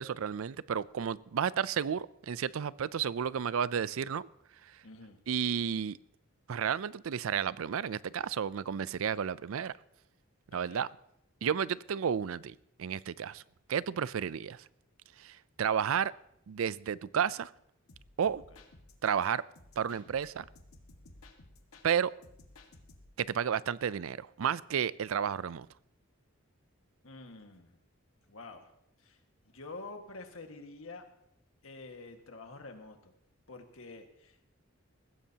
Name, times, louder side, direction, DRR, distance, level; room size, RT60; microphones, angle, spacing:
voice 1, 0.0-4.3 4.6-4.8 5.3-6.0 6.5-9.7 10.5-10.9 11.4-13.4 13.7-14.6 15.2-16.1 16.5-17.5 18.2-18.4 19.0-19.4 19.8-20.5 21.8-22.1 23.2-25.7, right 8 dB, 75° right, 0.4 m, -32 dB
voice 2, 4.8-5.2 10.5-10.8 27.0-27.8 28.3-28.7 29.0-31.1 31.6-33.1 33.5-34.6, left 3 dB, 70° left, 1.8 m, -48 dB
sound 1, 17.9-19.3 19.6-21.9 22.2-23.2, left 2 dB, 90° left, 1.7 m, -56 dB
20.0 x 15.5 x 2.9 m
head